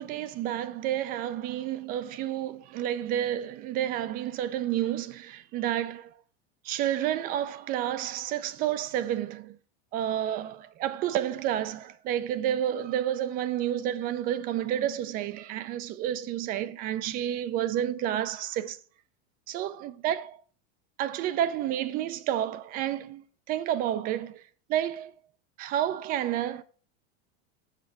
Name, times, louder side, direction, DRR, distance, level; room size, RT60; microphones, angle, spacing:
voice 1, 0.0-6.1 6.6-9.6 9.9-18.8 19.5-20.4 21.0-24.4 24.7-25.1 25.6-26.6, right 11 dB, 25° right, 0.4 m, -30 dB
7.3 x 4.6 x 6.4 m
supercardioid pair, 150°, 34 cm